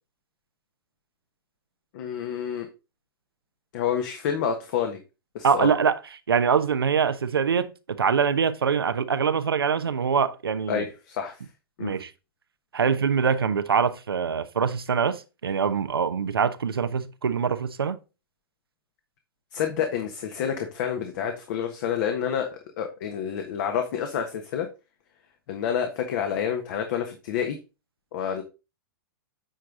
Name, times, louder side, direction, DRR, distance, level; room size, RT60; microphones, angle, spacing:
voice 1, 1.9-2.7 3.7-5.0 5.3-5.7 10.7-11.4 11.8-12.0 19.5-24.7 25.5-27.6 28.1-28.4, left 8 dB, 55° left, 1.4 m, -28 dB
voice 2, 5.4-6.0 6.3-10.9 11.8-12.1 12.7-18.0, right 6 dB, 85° right, 0.9 m, -24 dB
9.0 x 4.7 x 3.8 m
hypercardioid pair, 110°, 12 cm